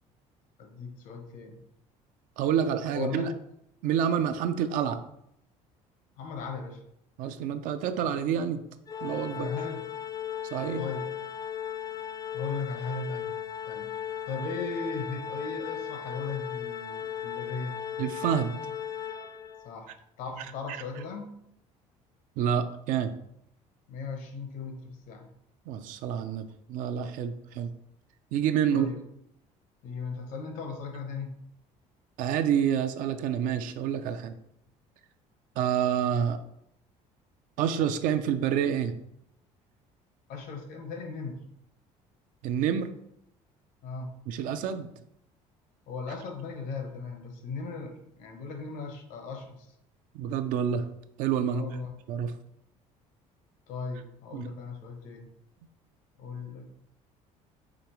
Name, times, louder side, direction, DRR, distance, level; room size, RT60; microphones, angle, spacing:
voice 1, 0.6-1.6 2.9-3.3 6.2-6.8 9.3-9.8 10.8-11.1 12.3-13.3 13.6-14.0 14.3-17.8 19.6-21.3 23.9-25.3 28.7-29.0 29.8-31.4 40.3-41.4 43.8-44.1 45.9-49.7 51.5-51.9 53.7-55.3 56.2-56.7, left 4 dB, 75° left, 5 dB, 0.9 m, -37 dB
voice 2, 2.4-3.3 3.8-5.0 7.2-8.6 9.0-9.5 10.5-10.8 18.0-18.5 20.7-20.8 22.4-23.1 25.7-27.7 28.3-28.9 32.2-34.4 35.6-36.4 37.6-38.9 42.4-42.9 44.3-44.9 50.1-50.8 51.2-51.7 52.1-52.3 54.3-54.5, right 8 dB, 70° right, 10 dB, 0.5 m, -28 dB
Organ, 8.9-19.7, left 9 dB, 25° left, 0.3 m, -36 dB
5.0 x 3.2 x 3.0 m, 0.77 s
cardioid pair, 115°, 14 cm